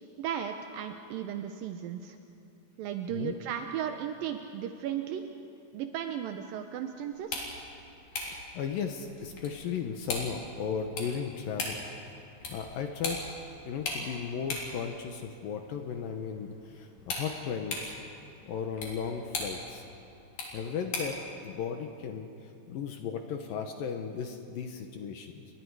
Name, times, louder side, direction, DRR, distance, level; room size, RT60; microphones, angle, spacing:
voice 1, 0.2-2.2 2.8-5.3 5.7-7.5, right 9 dB, 85° right, 6 dB, 2.0 m, -35 dB
sound 1, 7.1-21.3, left 3 dB, 50° left, 4.8 m, -40 dB
voice 2, 8.1-11.8 12.5-13.2 13.6-18.0 18.4-19.8 20.5-21.2 21.4-22.3 22.7-25.3, left 7 dB, 75° left, 5 dB, 2.2 m, -35 dB
30.0 x 22.0 x 4.8 m, 2.8 s
omnidirectional pair, 5.1 m